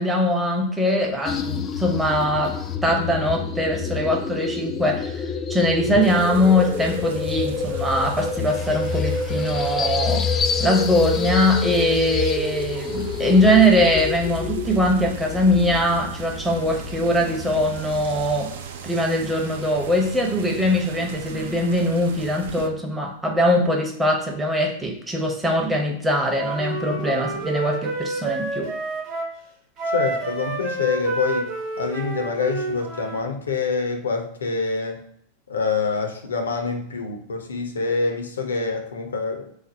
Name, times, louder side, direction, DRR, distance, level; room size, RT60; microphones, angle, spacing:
voice 1, 0.0-10.3 10.6-18.5 18.8-28.7, equal, 10° right, 1 dB, 0.7 m, -21 dB
sound 1, 1.2-18.4, left 6 dB, 25° left, 0.3 m, -28 dB
sound 2, 6.0-22.7, right 7 dB, 60° right, 0.4 m, -38 dB
Wind instrument woodwind instrument, 26.3-29.3 29.8-33.3, right 3 dB, 35° right, 1.0 m, -29 dB
voice 2, 29.9-31.5 31.8-35.1 35.5-39.5, left 4 dB, 70° left, 4 dB, 0.6 m, -26 dB
3.2 x 2.0 x 3.9 m, 0.68 s
figure-of-eight pair, 90°, 0 cm